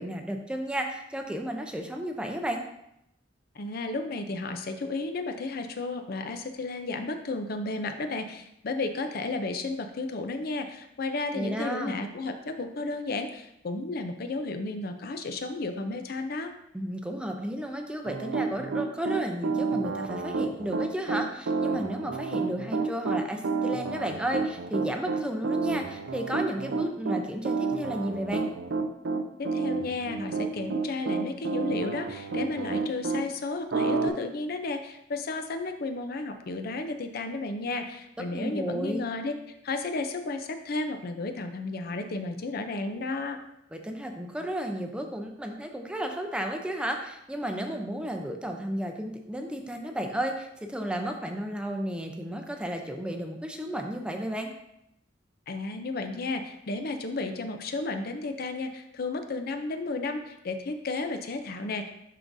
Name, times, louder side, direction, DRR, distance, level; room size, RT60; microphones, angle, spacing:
voice 1, 0.0-2.6 11.3-12.0 16.7-28.5 38.3-39.0 43.7-54.5, right 1 dB, 5° right, 3 dB, 0.5 m, -33 dB
voice 2, 3.5-16.5 29.4-43.4 55.5-61.9, left 3 dB, 55° left, 7 dB, 0.5 m, -33 dB
Piano, 18.1-33.2 33.7-34.1, right 4 dB, 80° right, 0.5 m, -29 dB
10.5 x 3.8 x 2.6 m, 0.80 s
head